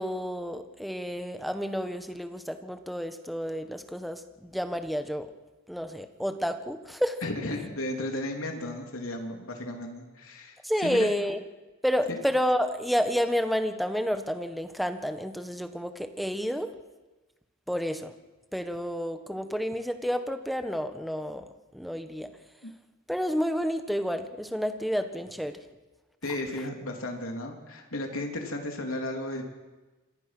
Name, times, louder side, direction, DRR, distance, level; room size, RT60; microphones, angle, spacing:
voice 1, 0.0-5.3 5.7-7.2 10.6-11.4 11.8-16.7 17.7-18.1 18.5-21.5 21.7-22.3 23.1-25.6, equal, ahead, 7 dB, 1.4 m, -30 dB
voice 2, 7.2-10.6 10.8-11.1 12.1-12.2 22.6-22.7 26.2-29.4, left 1 dB, 90° left, 3 dB, 3.4 m, -34 dB
27.5 x 24.0 x 6.1 m, 1.2 s
head